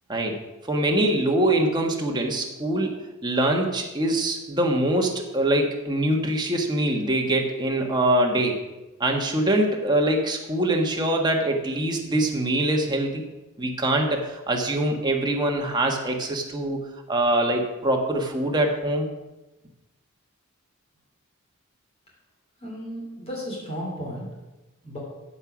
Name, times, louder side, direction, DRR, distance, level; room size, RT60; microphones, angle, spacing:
voice 1, 0.7-2.9 3.2-8.6 9.0-13.2 13.6-16.8 17.1-19.1, right 1 dB, 20° right, 1 dB, 1.4 m, -23 dB
voice 2, 22.6-24.3 24.8-25.0, equal, 30° left, -4 dB, 3.3 m, -34 dB
14.5 x 5.5 x 6.2 m, 1.1 s
head